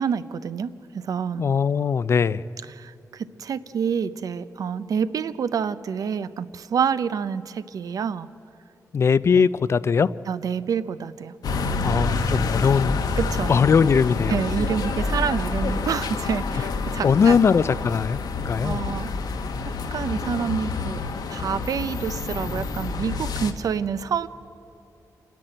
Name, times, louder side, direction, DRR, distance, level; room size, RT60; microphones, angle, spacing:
voice 1, 0.0-1.4 2.8-8.3 9.4-9.5 10.3-11.3 11.7-12.0 13.2-13.5 14.3-17.4 18.6-19.1 19.9-21.0 21.3-24.3, right 7 dB, 65° right, 15 dB, 0.6 m, -28 dB
voice 2, 1.4-2.4 8.9-10.1 11.8-13.0 13.5-14.4 17.0-18.8, left 6 dB, 45° left, 18 dB, 0.4 m, -20 dB
sound 1, 11.4-23.5, left 4 dB, 85° left, 1.3 m, -28 dB
28.0 x 10.5 x 8.9 m, 2.9 s
wide cardioid pair, 170°, 7 cm